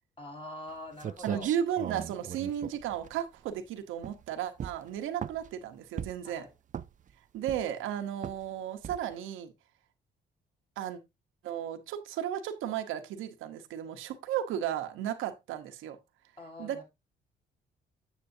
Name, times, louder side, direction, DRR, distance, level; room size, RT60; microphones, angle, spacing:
voice 1, 0.2-1.5 6.2-6.5 16.4-16.8, left 2 dB, 25° left, 4.5 m, -44 dB
sound 1, 0.7-0.8 1.0-3.6 4.0-4.3 4.6-5.5 6.0-6.3 6.7-7.1 7.5-7.9 8.2-8.5 8.8-9.2, right 9 dB, 40° right, 0.5 m, -39 dB
voice 2, 1.2-6.5 7.3-9.5 10.8-11.0 11.4-16.0 16.6-16.8, right 10 dB, 90° right, 1.0 m, -34 dB
8.1 x 7.5 x 2.7 m
cardioid pair, 90°, 20 cm